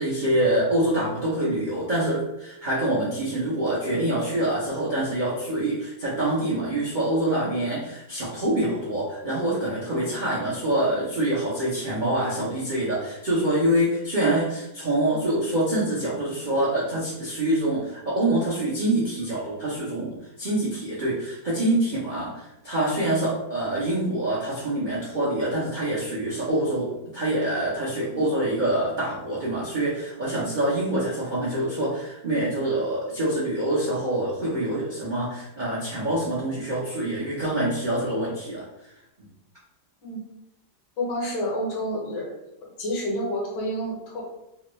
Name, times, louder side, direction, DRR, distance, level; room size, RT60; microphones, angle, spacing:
voice 1, 0.0-38.6 39.2-39.3, right 1 dB, 65° right, -8 dB, 0.4 m, -25 dB
voice 2, 41.0-42.4 42.8-44.2, equal, 75° left, -2 dB, 1.5 m, -29 dB
3.4 x 2.2 x 3.0 m, 0.89 s
omnidirectional pair, 1.9 m